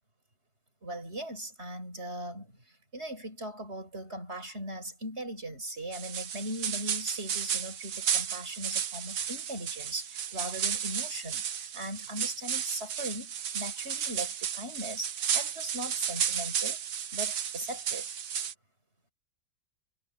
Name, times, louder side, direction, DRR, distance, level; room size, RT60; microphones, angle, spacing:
voice 1, 0.8-16.8 17.1-18.1, right 1 dB, 40° right, 5.9 m, -39 dB
sound 1, 5.9-18.5, right 8 dB, 75° right, 1.6 m, -33 dB
omnidirectional pair, 1.7 m